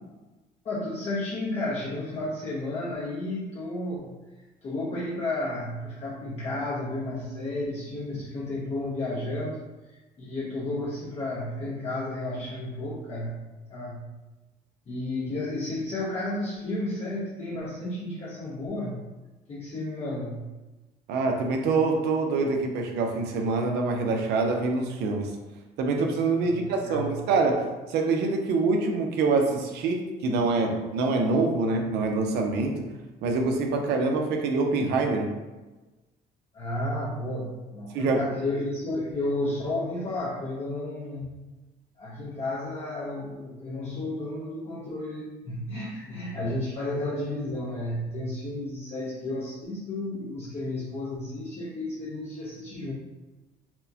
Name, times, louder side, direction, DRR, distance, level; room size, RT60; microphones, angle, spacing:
voice 1, 0.6-4.1 4.6-9.6 9.9-13.4 13.7-14.1 14.9-19.0 19.5-20.4 26.4-27.1 36.5-41.4 42.0-52.9, left 2 dB, 40° left, -6 dB, 0.6 m, -32 dB
voice 2, 21.1-25.3 25.8-32.8 33.2-35.3 37.9-38.2, right 3 dB, 80° right, 3 dB, 0.6 m, -25 dB
4.3 x 2.1 x 2.7 m, 1.2 s
cardioid pair, 110°, 17 cm